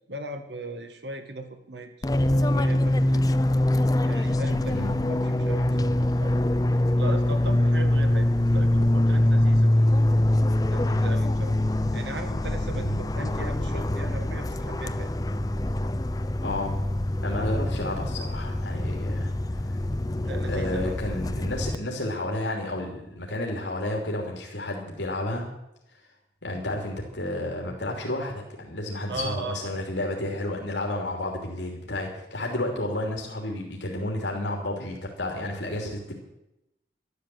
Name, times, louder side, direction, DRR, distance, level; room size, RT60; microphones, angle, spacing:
voice 1, 0.1-2.1 2.5-3.3 4.1-6.4 7.0-9.7 10.7-11.6 11.9-15.1 20.2-20.9 29.1-29.8, right 1 dB, 75° right, 7 dB, 2.0 m, -37 dB
Fixed-wing aircraft airplane, 2.0-21.8, left 1 dB, 20° left, 0.5 m, -24 dB
voice 2, 16.4-16.8 17.2-19.3 20.5-25.5 26.4-36.1, left 1 dB, 90° left, 0 dB, 3.0 m, -31 dB
12.0 x 12.0 x 7.8 m, 0.87 s
head